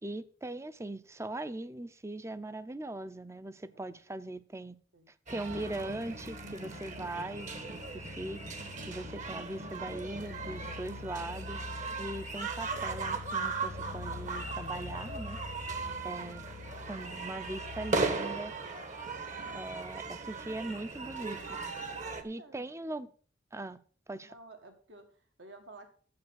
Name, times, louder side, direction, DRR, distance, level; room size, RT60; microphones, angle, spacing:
voice 1, 0.0-4.8 5.3-8.4 8.9-11.6 12.0-15.7 16.0-16.5 16.9-18.5 19.5-21.6 22.2-23.1 23.5-23.8 24.1-24.3, right 2 dB, 15° right, 0.6 m, -40 dB
sound 1, 5.3-22.2, right 4 dB, 40° right, 1.3 m, -38 dB
sound 2, 5.5-18.2, left 4 dB, 75° left, 0.8 m, -46 dB
voice 2, 15.7-16.3 22.2-22.7 24.2-25.9, right 2 dB, 75° right, 2.0 m, -54 dB
9.6 x 7.6 x 6.5 m
head